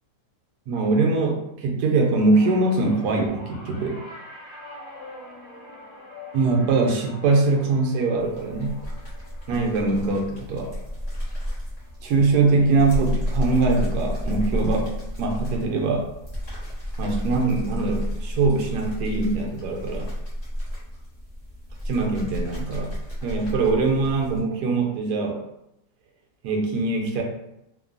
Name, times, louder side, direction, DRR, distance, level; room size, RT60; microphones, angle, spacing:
voice 1, 0.7-4.0 6.3-8.8 9.5-10.7 12.0-14.9 15.2-16.1 17.0-20.1 21.9-22.9 23.2-25.4 26.4-27.2, right 3 dB, 80° right, 1 dB, 1.2 m, -22 dB
sound 1, 2.3-12.8 13.1-13.5 14.6-14.7, left 2 dB, 65° left, 1.2 m, -45 dB
sound 2, 8.2-24.4, equal, 20° left, 0.8 m, -31 dB
3.0 x 2.2 x 2.4 m, 0.84 s
omnidirectional pair, 1.8 m